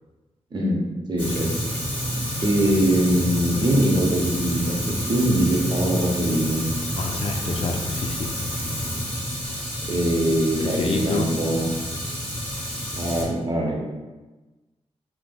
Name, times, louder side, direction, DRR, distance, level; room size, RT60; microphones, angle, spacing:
voice 1, 1.1-1.5 2.4-6.6 9.9-11.8 12.9-13.8, right 1 dB, 40° right, -2 dB, 0.7 m, -22 dB
Fire, 1.2-13.2, equal, 15° left, 0.9 m, -29 dB
voice 2, 7.0-8.3 10.6-11.3, left 3 dB, 50° left, 3 dB, 0.3 m, -28 dB
3.3 x 2.8 x 2.2 m, 1.2 s
wide cardioid pair, 100°, 12 cm